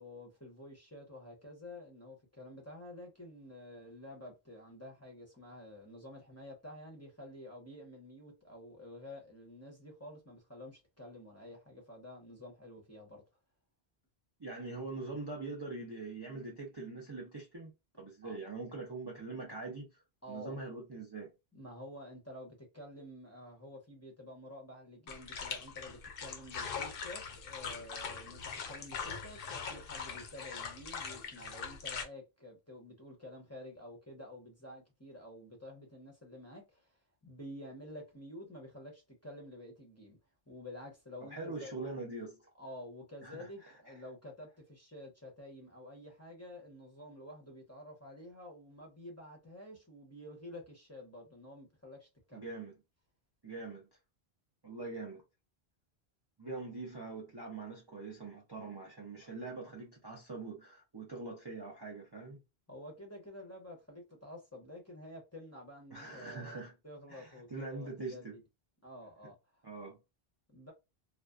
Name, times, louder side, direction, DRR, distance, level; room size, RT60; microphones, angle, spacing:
voice 1, 0.0-13.2 18.2-18.4 20.2-20.6 21.5-40.2 40.5-41.9 42.6-52.4 62.7-68.3 68.8-69.4 70.5-70.7, left 1 dB, 15° left, 0.7 m, -50 dB
voice 2, 14.4-17.7 18.0-19.9 20.3-21.3 41.2-42.4 43.2-43.9 52.3-52.8 53.4-53.9 54.6-55.2 56.4-62.4 65.9-66.7 67.1-68.4 69.6-70.0, right 3 dB, 30° right, 0.5 m, -43 dB
sound 1, 25.1-32.0, left 6 dB, 65° left, 0.7 m, -42 dB
2.5 x 2.3 x 2.3 m
omnidirectional pair, 1.1 m